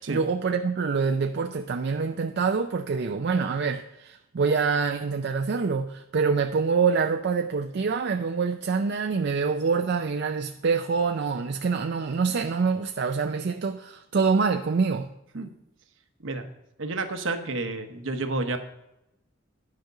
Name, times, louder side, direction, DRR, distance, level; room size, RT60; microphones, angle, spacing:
voice 1, 0.0-15.1, right 5 dB, 55° right, 5 dB, 0.4 m, -26 dB
voice 2, 16.8-18.6, right 3 dB, 70° right, 7 dB, 1.0 m, -30 dB
10.5 x 5.1 x 6.5 m, 0.87 s
head